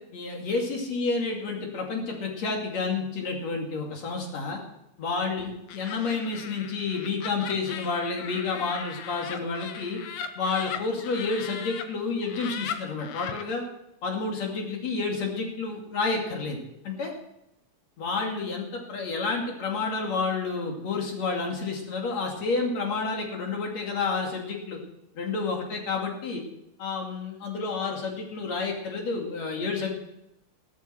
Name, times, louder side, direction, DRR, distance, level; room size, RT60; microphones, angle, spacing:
voice 1, 0.1-4.6 5.0-10.0 10.4-13.6 14.0-16.6 16.8-17.1 18.0-24.8 25.2-26.4 26.8-29.9, left 4 dB, 45° left, 1 dB, 3.5 m, -30 dB
Laughter, 5.7-11.8 12.2-13.4, left 8 dB, 70° left, 1.9 m, -38 dB
15.5 x 12.5 x 4.5 m, 0.84 s
omnidirectional pair, 4.5 m